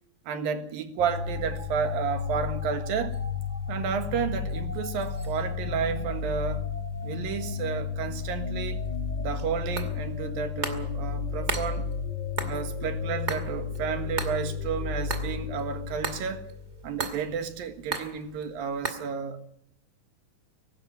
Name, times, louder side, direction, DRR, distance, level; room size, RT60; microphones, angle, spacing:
voice 1, 0.3-3.2 3.7-6.7 7.0-8.9 9.2-11.9 12.4-16.5 16.8-19.4, right 7 dB, 80° right, 3.4 m, -31 dB
sound 1, 1.0-17.3, left 6 dB, 10° left, 3.6 m, -33 dB
sound 2, 1.0-18.9, right 3 dB, 25° right, 2.0 m, -41 dB
23.0 x 12.5 x 9.4 m
omnidirectional pair, 4.1 m